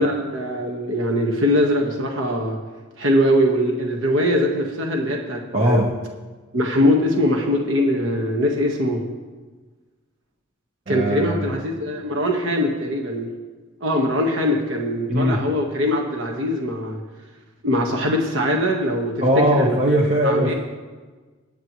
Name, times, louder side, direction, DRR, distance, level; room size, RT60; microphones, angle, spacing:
voice 1, 0.0-2.6 3.0-5.8 6.5-9.0 10.9-13.3 13.8-17.0 17.6-19.1 19.6-20.5, equal, 70° right, 1 dB, 1.5 m, -22 dB
voice 2, 5.5-5.9 10.9-11.5 15.1-15.4 19.2-20.5, right 1 dB, 35° right, -1 dB, 1.1 m, -20 dB
20.5 x 8.9 x 3.1 m, 1.3 s
head